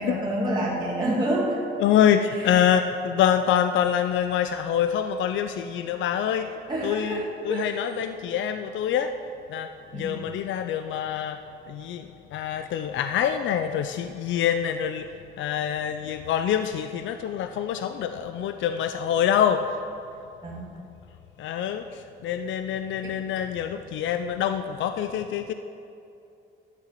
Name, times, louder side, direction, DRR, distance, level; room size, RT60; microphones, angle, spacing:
voice 1, 0.0-1.6 2.3-2.6 6.7-7.8 9.9-10.2 20.4-20.7 23.0-23.2, right 1 dB, 20° right, -6 dB, 2.6 m, -28 dB
voice 2, 1.8-6.5 6.8-9.1 9.5-11.4 11.7-15.1 15.4-19.8 21.4-25.5, left 9 dB, 70° left, 9 dB, 0.5 m, -25 dB
11.5 x 6.5 x 7.5 m, 2.6 s
cardioid pair, 90°, 20 cm